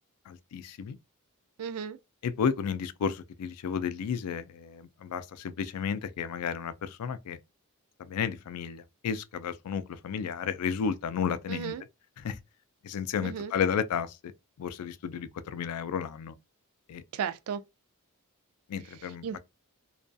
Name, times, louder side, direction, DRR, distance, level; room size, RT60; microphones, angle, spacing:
voice 1, 0.3-1.0 2.2-7.4 8.0-11.7 12.2-12.4 12.8-14.3 14.6-16.3 16.9-17.0 18.7-19.4, left 7 dB, 80° left, 0.3 m, -32 dB
voice 2, 1.6-2.0 11.5-11.8 13.2-13.5 17.1-17.6 19.2-19.4, right 7 dB, 65° right, 0.3 m, -34 dB
2.3 x 2.2 x 2.5 m
head